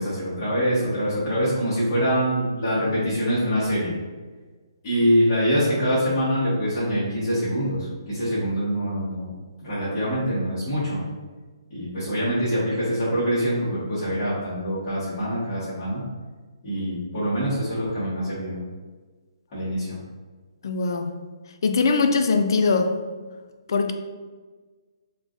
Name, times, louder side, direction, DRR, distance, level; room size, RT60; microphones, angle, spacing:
voice 1, 0.0-3.9 4.8-9.3 9.6-11.0 11.7-16.0 16.6-18.6 19.5-20.0, equal, 30° left, -14 dB, 1.4 m, -24 dB
voice 2, 20.6-21.2 21.6-23.0 23.7-23.9, left 4 dB, 55° left, 6 dB, 0.3 m, -21 dB
3.7 x 2.4 x 2.5 m, 1.4 s
hypercardioid pair, 165°, 3 cm